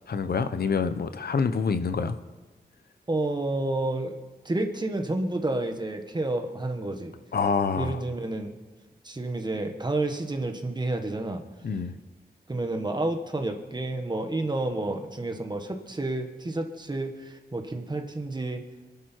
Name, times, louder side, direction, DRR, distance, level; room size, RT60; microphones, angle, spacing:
voice 1, 0.1-2.2 7.3-8.0 11.6-12.0, left 5 dB, 70° left, 10 dB, 0.9 m, -26 dB
voice 2, 3.1-4.2 4.4-7.1 7.8-8.5 9.0-11.4 12.5-18.6, right 2 dB, 25° right, 5 dB, 1.6 m, -30 dB
28.0 x 11.0 x 4.6 m, 1.3 s
wide cardioid pair, 120°, 17 cm